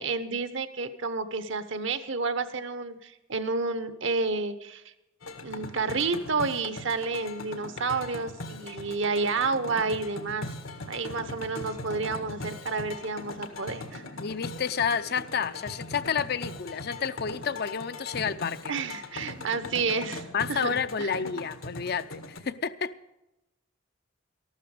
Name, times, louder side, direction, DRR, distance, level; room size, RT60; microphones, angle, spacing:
voice 1, 0.0-4.8 5.4-10.4 10.9-14.0 18.7-21.1, right 4 dB, 65° right, 11 dB, 1.0 m, -30 dB
sound 1, 5.2-22.4, left 2 dB, 85° left, 1.7 m, -40 dB
voice 2, 14.2-18.7 20.3-22.9, left 6 dB, 50° left, 12 dB, 0.6 m, -30 dB
13.5 x 12.5 x 4.9 m, 0.95 s
head